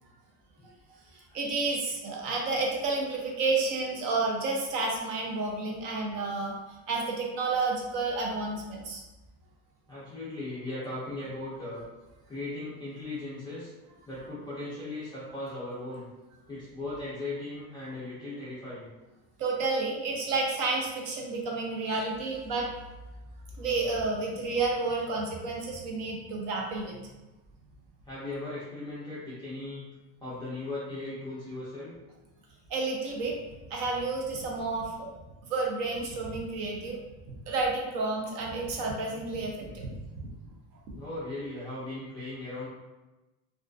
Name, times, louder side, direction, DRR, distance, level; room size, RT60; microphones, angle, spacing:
voice 1, 1.1-6.5 6.9-9.0 19.4-22.7 23.6-27.0 32.7-33.4 33.7-35.1 35.5-37.0 37.3-40.0, right 3 dB, 50° right, -1 dB, 0.5 m, -30 dB
voice 2, 9.9-11.8 12.3-13.7 14.1-16.1 16.5-18.9 28.1-29.9 30.2-31.9 40.9-42.7, left 2 dB, 10° left, -11 dB, 0.3 m, -38 dB
2.4 x 2.3 x 2.3 m, 1.1 s
cardioid pair, 160°, 44 cm